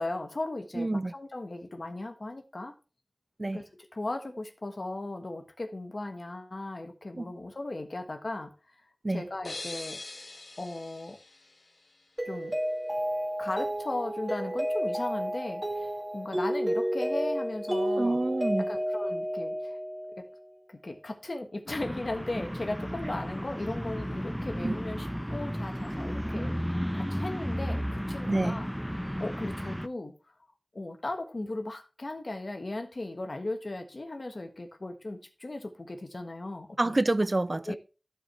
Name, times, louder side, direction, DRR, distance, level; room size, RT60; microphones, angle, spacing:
voice 1, 0.0-2.7 3.5-8.5 9.1-10.0 10.6-11.2 12.3-12.6 13.4-18.2 18.6-19.8 20.2-20.3 20.7-28.7 28.9-30.1 30.7-37.0 37.7-37.8, left 2 dB, 70° left, 1.4 m, -37 dB
voice 2, 0.7-1.1 3.4-3.6 7.2-7.3 9.0-9.2 18.0-18.7 23.1-23.2 24.6-24.8 28.3-28.6 36.8-37.8, right 2 dB, 50° right, 0.4 m, -28 dB
sound 1, 9.4-12.2, left 2 dB, 90° left, 1.0 m, -43 dB
Mallet percussion, 12.2-20.3, equal, 20° right, 1.8 m, -31 dB
sound 2, 21.7-29.9, equal, ahead, 0.6 m, -34 dB
14.0 x 4.9 x 3.3 m
wide cardioid pair, 40°, 0 cm